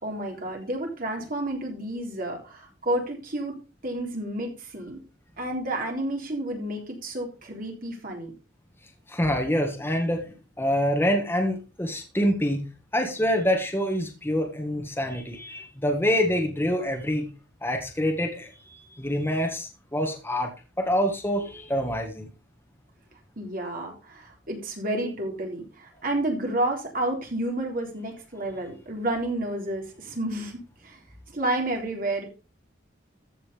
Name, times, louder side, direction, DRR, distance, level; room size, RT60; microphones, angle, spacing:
voice 1, 0.0-5.0 5.4-8.3 23.4-31.0 31.3-32.3, right 1 dB, 50° right, 1 dB, 3.7 m, -30 dB
voice 2, 9.1-12.7 12.9-17.3 17.6-20.5 20.8-22.3, equal, 10° left, 2 dB, 1.8 m, -26 dB
14.5 x 5.7 x 5.2 m, 0.33 s
head